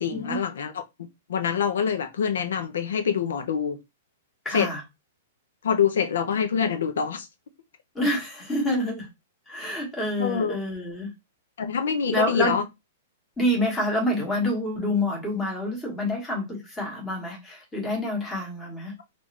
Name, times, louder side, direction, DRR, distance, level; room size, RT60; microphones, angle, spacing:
voice 1, 0.0-3.8 4.5-4.7 5.6-7.3 10.2-10.6 11.6-12.6, left 7 dB, 75° left, 0.6 m, -26 dB
voice 2, 4.4-4.8 7.9-9.1 9.5-11.1 12.1-12.6 13.4-18.9, left 1 dB, 5° left, 1.2 m, -27 dB
3.7 x 2.5 x 3.2 m
hypercardioid pair, 180°, 0 cm